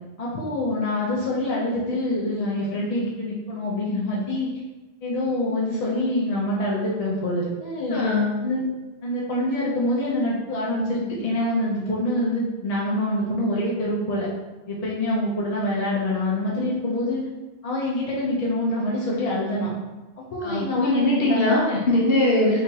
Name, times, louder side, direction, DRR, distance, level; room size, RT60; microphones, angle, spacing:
voice 1, 0.2-4.5 5.0-8.1 8.4-8.6 9.0-14.3 14.7-17.2 17.6-19.7 20.3-21.6, left 1 dB, 40° left, -6 dB, 0.6 m, -25 dB
voice 2, 7.9-8.4 20.4-22.6, left 2 dB, 65° left, -3 dB, 0.9 m, -21 dB
3.5 x 2.9 x 2.7 m, 1.1 s
omnidirectional pair, 1.1 m